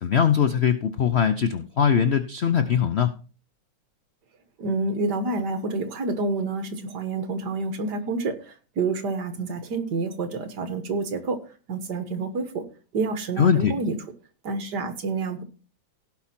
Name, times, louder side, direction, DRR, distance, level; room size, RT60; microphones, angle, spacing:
voice 1, 0.0-3.1 13.4-13.7, left 7 dB, 60° left, 10 dB, 0.6 m, -21 dB
voice 2, 4.6-11.4 11.7-12.6 12.9-14.0 14.4-15.4, right 3 dB, 60° right, 9 dB, 1.9 m, -28 dB
17.0 x 5.9 x 4.4 m, 0.36 s
omnidirectional pair, 2.1 m